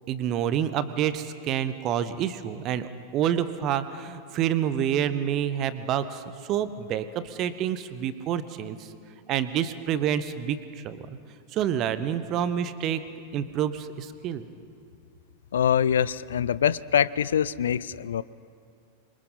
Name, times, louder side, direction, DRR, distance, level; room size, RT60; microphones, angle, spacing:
voice 1, 0.1-8.9 9.3-11.2 11.5-13.0 13.3-14.5, right 9 dB, 35° right, 13 dB, 1.1 m, -28 dB
voice 2, 15.5-18.2, left 8 dB, 65° left, 19 dB, 0.4 m, -24 dB
27.5 x 23.5 x 4.0 m, 2.4 s
figure-of-eight pair, 90°, 0 cm